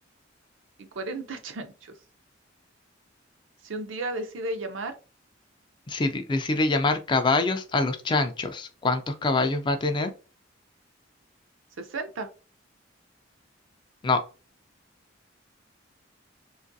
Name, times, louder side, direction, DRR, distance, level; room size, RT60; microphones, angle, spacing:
voice 1, 0.8-1.9 3.6-4.9 11.8-12.3, right 2 dB, 80° right, 7 dB, 0.6 m, -34 dB
voice 2, 5.9-10.1 14.0-14.2, left 3 dB, 25° left, 7 dB, 0.3 m, -25 dB
3.0 x 2.4 x 2.6 m, 0.34 s
head